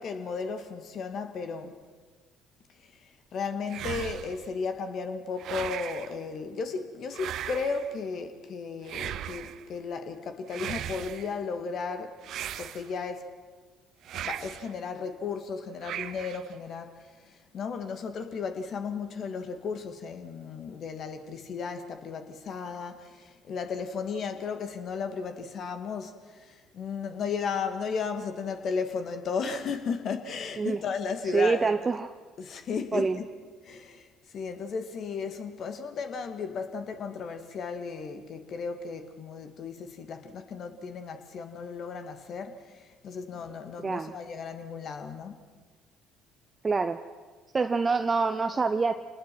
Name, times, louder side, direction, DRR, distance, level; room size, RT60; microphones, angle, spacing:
voice 1, 0.0-1.8 2.8-12.2 12.6-13.3 14.1-31.7 32.4-33.2 33.6-45.4, left 5 dB, 55° left, 2.2 m, -35 dB
sound 1, 3.7-4.5 5.4-6.2 7.1-7.9 8.9-9.6 10.5-11.3 12.2-13.1 14.0-14.7 15.8-16.5, right 11 dB, 60° right, 0.7 m, -37 dB
voice 2, 31.3-32.1 32.9-33.2 43.8-44.1 46.6-47.0 47.5-49.0, right 4 dB, 30° right, 0.9 m, -26 dB
27.5 x 19.5 x 6.2 m
hypercardioid pair, 55°, 0 cm